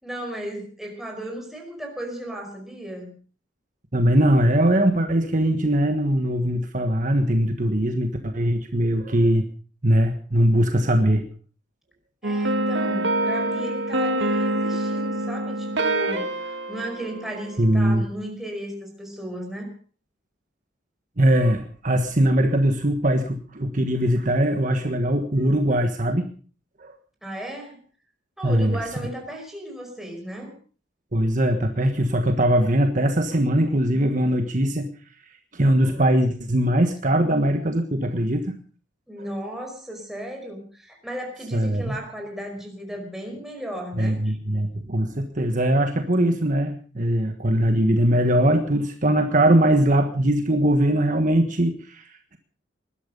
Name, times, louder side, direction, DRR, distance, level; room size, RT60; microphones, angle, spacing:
voice 1, 0.0-3.1 12.2-19.7 27.2-27.8 28.4-30.6 39.1-44.5, right 1 dB, ahead, 1 dB, 4.9 m, -35 dB
voice 2, 3.9-9.4 9.8-11.3 17.6-18.0 21.2-26.3 26.8-26.9 28.4-28.8 31.1-34.9 35.5-38.5 41.5-41.9 44.0-52.4, right 1 dB, 45° right, 5 dB, 1.5 m, -21 dB
sound 1, 12.2-17.9, right 1 dB, 70° right, 2.1 m, -26 dB
20.0 x 12.0 x 5.4 m, 0.41 s
head